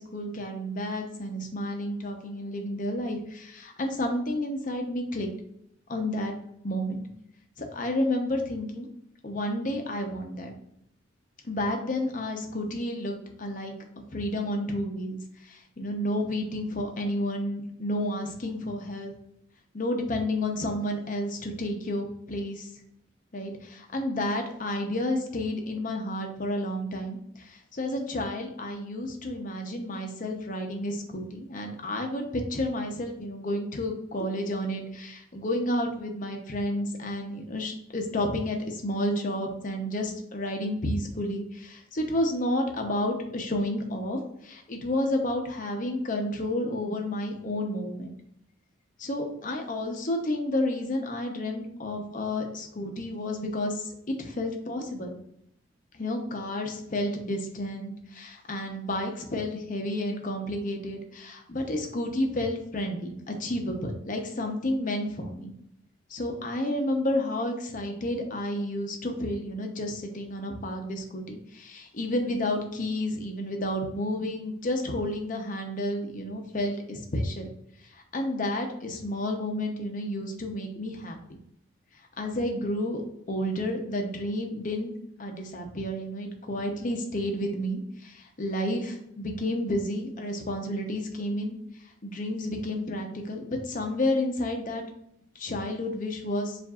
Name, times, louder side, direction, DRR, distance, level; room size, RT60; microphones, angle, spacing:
voice 1, 0.0-5.3 5.9-6.3 6.6-7.0 7.6-8.9 9.2-10.5 11.5-13.7 14.1-15.2 15.4-19.1 19.7-22.7 23.3-48.1 49.0-53.9 54.2-55.1 55.9-65.5 66.1-77.5 77.9-81.2 82.2-83.0 83.3-84.9 85.2-91.6 92.0-94.8 95.4-96.6, left 1 dB, 40° left, 3 dB, 0.7 m, -31 dB
7.2 x 2.6 x 2.3 m, 0.74 s
head